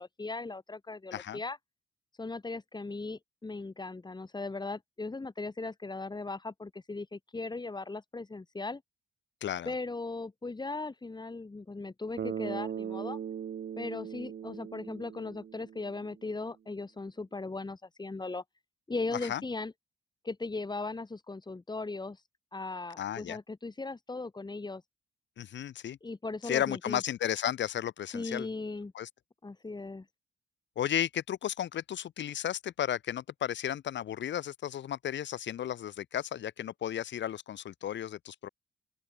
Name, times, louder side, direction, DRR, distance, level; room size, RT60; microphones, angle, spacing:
voice 1, 0.0-1.6 2.2-8.8 9.7-13.2 13.8-18.4 18.9-19.7 20.2-22.2 22.5-24.8 26.0-27.0 28.1-28.9 29.4-30.1, left 3 dB, 20° left, 6.3 m, -38 dB
voice 2, 9.4-9.7 19.1-19.4 23.0-23.4 25.4-26.0 26.4-28.5 28.9-29.1 30.8-38.5, left 10 dB, 65° left, 2.6 m, -34 dB
Bass guitar, 12.2-16.2, right 8 dB, 55° right, 2.7 m, -39 dB
open air
cardioid pair, 90°, 20 cm